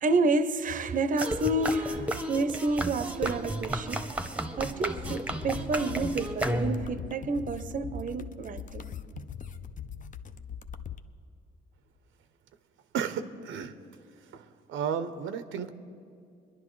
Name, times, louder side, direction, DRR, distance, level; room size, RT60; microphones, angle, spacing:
voice 1, 0.0-4.3 4.6-8.9, right 2 dB, 40° right, 0.6 m, -29 dB
sound 1, 1.2-7.0, right 1 dB, 5° right, 0.8 m, -33 dB
sound 2, 4.9-11.0, left 8 dB, 40° left, 0.5 m, -41 dB
voice 2, 12.9-13.7 14.3-15.7, right 7 dB, 80° right, 0.6 m, -33 dB
23.0 x 11.0 x 3.1 m
cardioid pair, 90°, 20 cm